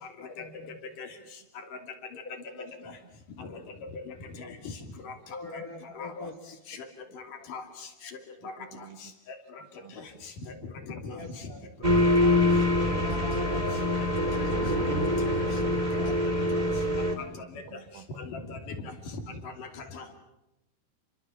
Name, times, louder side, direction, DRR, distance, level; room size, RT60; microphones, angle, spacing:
voice 1, 0.3-0.8 2.6-2.7 5.3-6.3 11.1-11.6 12.7-15.2 16.0-16.2 16.6-16.8, left 3 dB, 80° left, 6 dB, 0.8 m, -41 dB
voice 2, 3.4-4.5 5.0-5.1 5.5-5.6 6.0-6.1 6.7-6.8 7.1-7.2 7.5-7.6 8.4-8.5 10.9-11.2 12.8-12.9 15.3-15.4 17.2-17.4 18.2-18.8 19.4-20.0, left 4 dB, 55° left, 6 dB, 4.0 m, -40 dB
sound 1, 11.8-17.1, left 1 dB, 20° right, 1.1 m, -25 dB
voice 3, 17.4-18.1 18.8-18.9, right 12 dB, 75° right, 11 dB, 3.1 m, -50 dB
29.5 x 23.0 x 7.1 m, 0.90 s
omnidirectional pair, 4.7 m